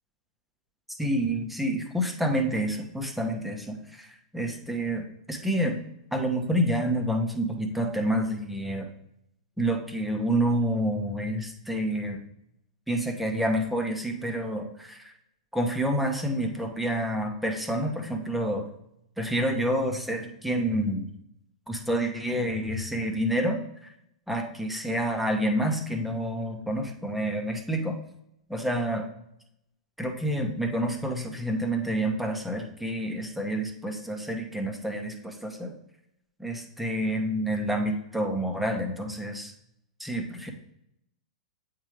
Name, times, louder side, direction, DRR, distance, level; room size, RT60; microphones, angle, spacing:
voice 1, 1.0-5.8 6.1-8.9 9.6-12.2 12.9-15.1 15.5-18.7 19.2-21.1 21.7-23.9 24.3-27.9 28.5-29.1 30.0-35.7 36.4-39.5 40.0-40.5, right 1 dB, ahead, 2 dB, 1.3 m, -28 dB
8.8 x 3.6 x 3.3 m, 0.79 s
figure-of-eight pair, 100°, 4 cm